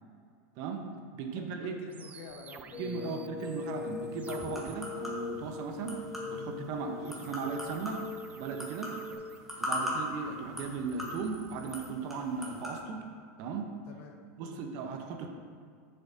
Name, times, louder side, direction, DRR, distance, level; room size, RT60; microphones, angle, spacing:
voice 1, 0.6-1.8 2.8-6.0 6.3-8.0 8.3-8.9 9.6-13.0 13.4-13.7 14.4-15.3, right 5 dB, 50° right, 4 dB, 1.0 m, -37 dB
voice 2, 1.6-3.2 9.1-9.2 9.8-9.9 13.9-14.6, left 5 dB, 60° left, 3 dB, 1.2 m, -50 dB
sound 1, 1.9-4.7 7.0-9.9 10.7-11.9, right 6 dB, 20° right, 0.3 m, -53 dB
sound 2, 2.7-9.1, left 5 dB, 35° left, 1.5 m, -41 dB
sound 3, 3.4-12.8, left 1 dB, ahead, 1.6 m, -41 dB
11.5 x 7.2 x 2.8 m, 2.2 s
supercardioid pair, 145°, 8 cm